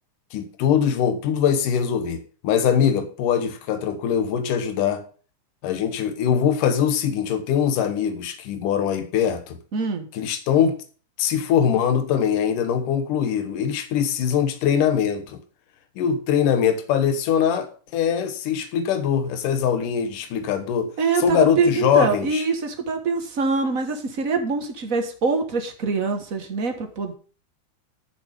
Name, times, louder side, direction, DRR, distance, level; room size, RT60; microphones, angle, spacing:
voice 1, 0.3-5.0 5.6-9.6 10.1-10.8 11.2-15.4 16.0-20.9 21.2-22.5, left 8 dB, 80° left, 2.8 m, -22 dB
voice 2, 9.7-10.1 21.0-27.1, right 4 dB, 45° right, 1.1 m, -24 dB
12.0 x 7.1 x 5.2 m
omnidirectional pair, 3.7 m